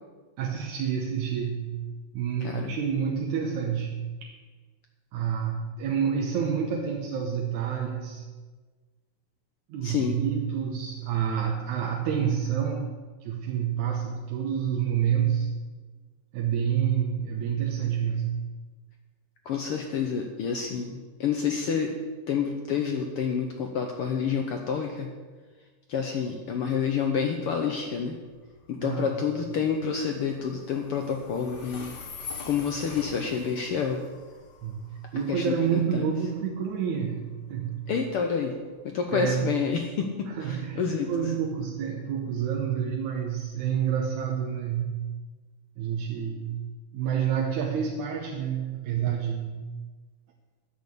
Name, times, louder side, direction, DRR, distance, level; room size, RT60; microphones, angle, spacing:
voice 1, 0.4-1.8 2.1-3.9 4.2-4.3 5.1-8.2 9.7-12.9 13.2-15.5 16.3-18.5 28.8-29.2 34.6-37.9 39.1-39.5 40.3-45.0 45.8-46.6 46.9-49.7, right 8 dB, 75° right, 0 dB, 2.2 m, -28 dB
voice 2, 2.4-2.7 9.8-10.2 19.5-21.9 22.3-25.1 25.9-28.2 28.7-31.9 32.4-34.0 35.3-36.0 37.9-38.5 38.8-41.1, left 6 dB, 75° left, 3 dB, 1.3 m, -28 dB
Train, 27.3-42.0, left 4 dB, 60° left, 1.1 m, -47 dB
10.5 x 6.3 x 8.4 m, 1.4 s
omnidirectional pair, 3.6 m